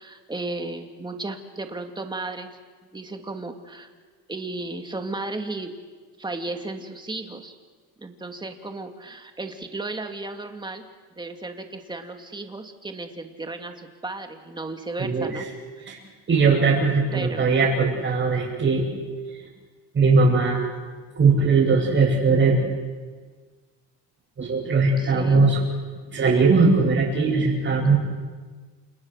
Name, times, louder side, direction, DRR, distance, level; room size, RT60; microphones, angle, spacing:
voice 1, 0.0-2.6 2.9-3.9 4.3-5.7 6.2-7.6 8.0-10.9 11.2-15.5 15.8-16.0 17.1-17.5 25.0-25.4, right 2 dB, 10° right, 5 dB, 2.4 m, -34 dB
voice 2, 15.0-15.4 15.9-16.0 16.3-18.8 19.3-19.4 19.9-20.6 21.2-22.6 24.4-25.6 26.1-28.0, right 4 dB, 30° right, -7 dB, 7.6 m, -19 dB
29.5 x 28.0 x 6.5 m, 1.5 s
cardioid pair, 140°, 41 cm